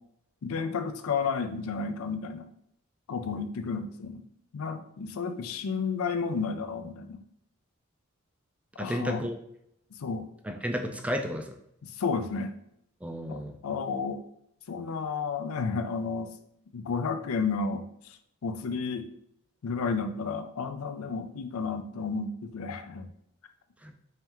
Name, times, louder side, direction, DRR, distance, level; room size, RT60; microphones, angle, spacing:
voice 1, 0.4-2.5 3.1-4.2 4.5-7.2 8.8-9.2 10.0-10.3 12.0-12.5 13.3-14.2 14.7-16.3 16.7-17.9 18.4-19.1 19.6-23.1, left 5 dB, 90° left, 8 dB, 0.4 m, -32 dB
voice 2, 8.8-9.4 10.4-11.6 13.0-13.6 23.8-23.9, equal, 5° right, 4 dB, 0.3 m, -32 dB
3.5 x 3.3 x 2.9 m, 0.73 s
head